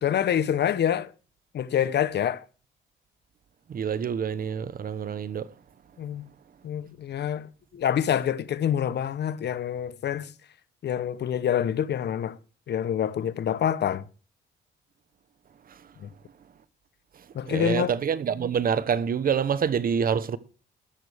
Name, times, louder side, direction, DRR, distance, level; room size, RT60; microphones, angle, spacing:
voice 1, 0.0-1.1 1.5-2.4 6.0-6.3 6.6-10.3 10.8-12.4 12.7-14.1 16.0-16.1 17.3-17.9, left 9 dB, 60° left, 0.8 m, -26 dB
voice 2, 3.7-5.5 17.5-20.4, right 7 dB, 45° right, 0.9 m, -26 dB
14.0 x 11.0 x 3.4 m
cardioid pair, 90°, 20 cm